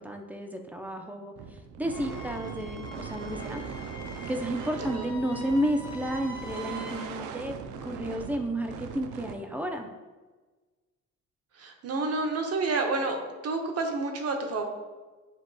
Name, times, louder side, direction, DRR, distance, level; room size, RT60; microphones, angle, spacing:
voice 1, 0.0-1.3 1.8-3.8 4.3-7.5 7.8-9.9, equal, 5° right, 4 dB, 0.5 m, -31 dB
sound 1, 1.4-9.4, right 6 dB, 80° right, 0.5 m, -40 dB
Wind instrument woodwind instrument, 1.8-7.1, equal, 15° left, 1.3 m, -44 dB
voice 2, 11.5-13.2 13.4-14.6, right 3 dB, 55° right, 4 dB, 0.8 m, -29 dB
7.3 x 2.9 x 2.2 m, 1.3 s
cardioid pair, 90°, 30 cm